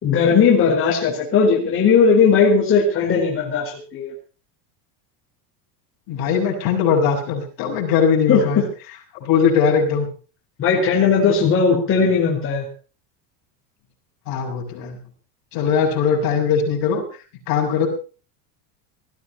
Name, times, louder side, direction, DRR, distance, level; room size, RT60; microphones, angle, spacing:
voice 1, 0.0-4.1 8.3-8.4 10.6-12.6, left 5 dB, 30° left, -3 dB, 4.7 m, -17 dB
voice 2, 6.1-8.6 9.2-10.1 14.3-15.0 15.5-17.0 17.5-17.9, left 6 dB, 50° left, 0 dB, 6.6 m, -20 dB
20.0 x 14.5 x 4.4 m, 0.35 s
cardioid pair, 160°, 45 cm